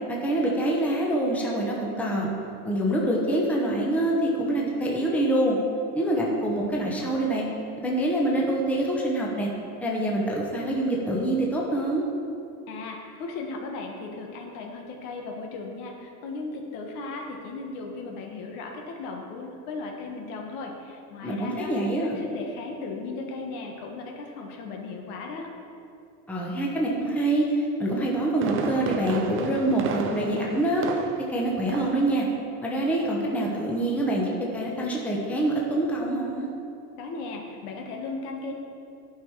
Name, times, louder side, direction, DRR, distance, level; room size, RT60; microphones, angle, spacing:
voice 1, 0.1-2.3 2.6-5.6 5.9-7.4 7.8-9.5 9.8-12.0 21.2-22.2 26.3-30.8 31.3-32.3 32.6-36.5, right 1 dB, 5° left, -3 dB, 0.9 m, -25 dB
voice 2, 12.7-21.7 22.0-25.5 37.0-38.5, left 3 dB, 70° left, 1 dB, 1.5 m, -36 dB
Fireworks, 28.1-31.4 31.7-32.1 32.4-32.5, right 5 dB, 30° right, 0.5 m, -32 dB
11.0 x 5.4 x 4.7 m, 2.6 s
supercardioid pair, 145°, 46 cm